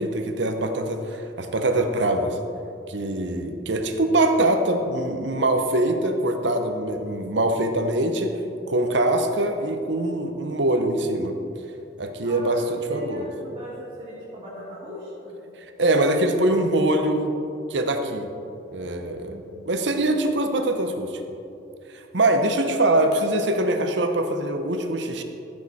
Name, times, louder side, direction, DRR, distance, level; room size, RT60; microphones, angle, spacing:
voice 1, 0.0-2.4 2.9-8.4 8.7-11.3 12.0-13.3 15.8-17.3 17.7-18.3 18.7-19.4 19.7-21.1 21.9-25.2, right 1 dB, 65° right, 6 dB, 0.9 m, -23 dB
voice 2, 12.2-12.6 12.9-15.4 19.2-19.5 22.3-22.6, equal, 30° right, -9 dB, 2.0 m, -40 dB
14.0 x 6.6 x 4.2 m, 2.7 s
head